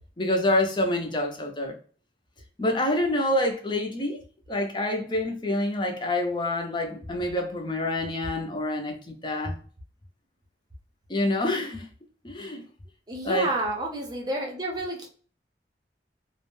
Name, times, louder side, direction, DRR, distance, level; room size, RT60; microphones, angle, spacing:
voice 1, 0.2-1.8 2.6-4.2 4.5-9.6 11.1-11.9 12.2-12.6 13.2-13.5, left 1 dB, 25° left, 0.5 m, -27 dB
voice 2, 13.1-15.1, right 1 dB, 20° right, 0.6 m, -30 dB
2.4 x 2.1 x 3.0 m
head